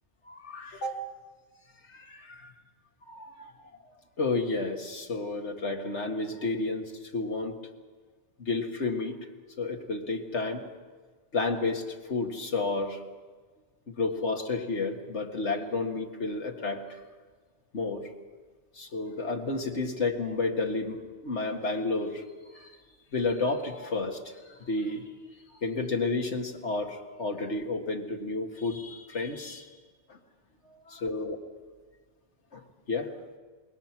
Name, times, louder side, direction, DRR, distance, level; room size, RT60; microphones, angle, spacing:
voice 1, 0.3-1.0 1.8-2.5 3.1-3.5 3.9-7.6 8.4-9.2 9.6-10.6 11.3-13.0 13.9-17.0 17.7-18.1 18.7-22.2 22.5-22.8 23.1-25.1 25.6-29.8 30.1-30.2 30.7-31.4 32.5-33.1, left 3 dB, 85° left, 2 dB, 2.2 m, -31 dB
27.0 x 21.5 x 6.0 m, 1.5 s
omnidirectional pair, 1.2 m